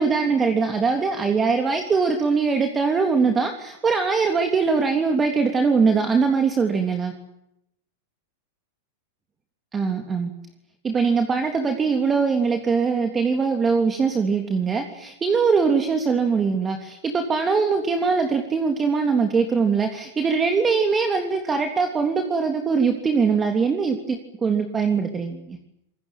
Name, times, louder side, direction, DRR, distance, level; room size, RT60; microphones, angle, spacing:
voice 1, 0.0-7.1 9.7-10.3 10.8-25.6, right 5 dB, 20° right, 5 dB, 3.3 m, -22 dB
26.5 x 22.0 x 9.2 m, 0.80 s
hypercardioid pair, 115°, 0 cm